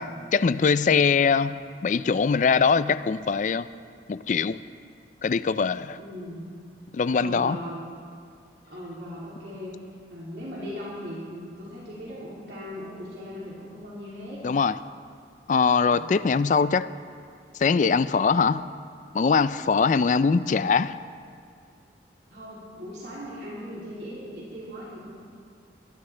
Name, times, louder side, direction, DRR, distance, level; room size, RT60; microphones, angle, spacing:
voice 1, 0.0-3.7 4.1-4.6 5.2-6.0 6.9-7.6 14.4-14.7 15.5-16.9 17.6-18.6 19.1-21.0, left 5 dB, 45° left, 0.3 m, -22 dB
voice 2, 6.0-6.5 7.1-7.8 8.7-9.7 10.1-14.4 15.9-16.3 22.3-25.1, equal, 75° right, 2.8 m, -39 dB
21.5 x 13.0 x 3.3 m
head